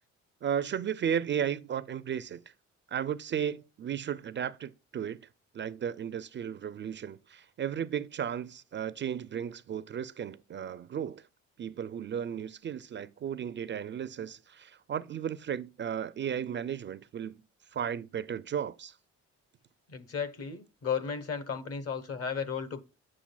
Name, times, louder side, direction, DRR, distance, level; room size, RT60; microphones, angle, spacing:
voice 1, 0.4-2.4 2.9-5.3 5.5-11.3 11.6-17.4 17.7-19.0, right 8 dB, 40° right, 0.4 m, -34 dB
voice 2, 19.9-22.8, left 6 dB, 50° left, 1.1 m, -34 dB
7.4 x 6.7 x 2.3 m
cardioid pair, 90°, 30 cm